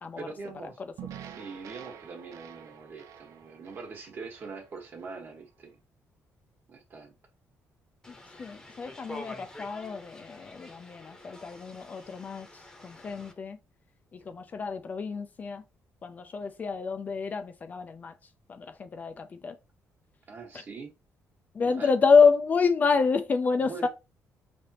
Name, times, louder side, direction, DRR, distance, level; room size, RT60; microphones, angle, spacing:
voice 1, 0.2-0.8 1.2-5.8 6.7-7.1 20.3-20.9 21.6-21.9 23.6-23.9, right 4 dB, 40° right, 1.3 m, -43 dB
sound 1, 1.0-5.3, right 9 dB, 80° right, 0.5 m, -47 dB
sound 2, 8.0-13.3, left 1 dB, 10° left, 0.9 m, -47 dB
voice 2, 8.1-12.5 12.8-13.6 14.1-15.6 16.0-18.1 18.5-19.6 21.5-23.9, left 5 dB, 30° left, 0.4 m, -27 dB
4.9 x 3.3 x 2.8 m
cardioid pair, 150°, 5 cm